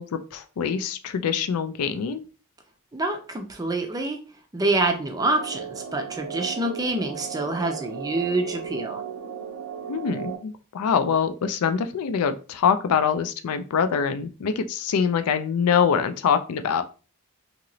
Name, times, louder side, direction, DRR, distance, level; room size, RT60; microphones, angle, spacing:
voice 1, 0.0-2.2 9.9-16.8, left 7 dB, 75° left, 9 dB, 0.4 m, -24 dB
voice 2, 2.9-4.2 4.5-9.0, right 2 dB, 15° right, 4 dB, 0.5 m, -26 dB
sound 1, 5.2-10.4, right 8 dB, 80° right, 0.6 m, -35 dB
2.9 x 2.9 x 2.6 m, 0.36 s
head